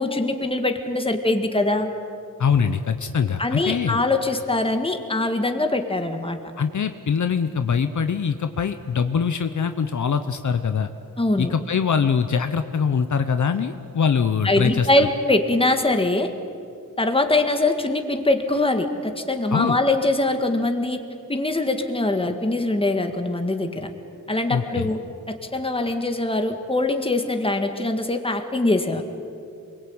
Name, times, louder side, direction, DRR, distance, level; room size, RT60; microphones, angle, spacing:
voice 1, 0.0-1.9 3.4-6.4 11.2-11.5 14.4-16.3 17.0-21.0 21.3-23.9 24.3-25.0 25.3-29.0, left 2 dB, 15° left, 6 dB, 1.9 m, -22 dB
voice 2, 2.4-4.0 6.6-10.9 11.4-15.1 19.5-19.8 24.5-24.9, left 6 dB, 60° left, 9 dB, 1.0 m, -23 dB
27.5 x 22.0 x 8.8 m, 2.5 s
wide cardioid pair, 155°, 33 cm